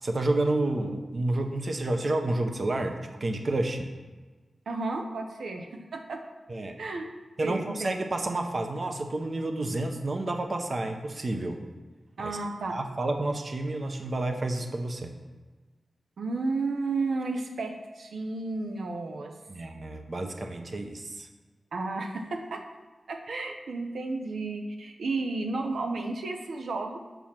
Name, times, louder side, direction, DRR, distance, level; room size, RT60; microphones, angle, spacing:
voice 1, 0.0-3.9 6.5-6.8 7.4-11.6 12.2-12.4 12.7-15.1 19.5-21.3, right 2 dB, 40° right, 5 dB, 0.8 m, -30 dB
voice 2, 4.7-6.2 6.8-7.0 7.4-7.9 12.2-12.7 16.2-19.3 21.7-22.6 23.1-27.0, right 3 dB, 85° right, 4 dB, 0.7 m, -32 dB
6.9 x 6.0 x 5.8 m, 1.3 s
wide cardioid pair, 120°, 0 cm